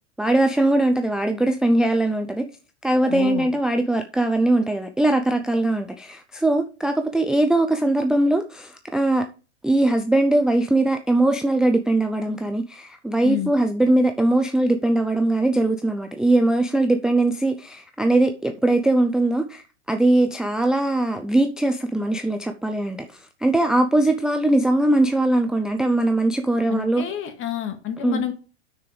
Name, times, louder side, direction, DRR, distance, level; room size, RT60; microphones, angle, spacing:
voice 1, 0.2-2.5 2.8-9.2 9.6-27.0 28.0-28.2, right 2 dB, ahead, 0.5 m, -21 dB
voice 2, 3.1-3.5 13.2-13.5 26.7-28.3, left 10 dB, 35° left, 1.9 m, -28 dB
6.6 x 6.3 x 4.9 m
hypercardioid pair, 115°, 35 cm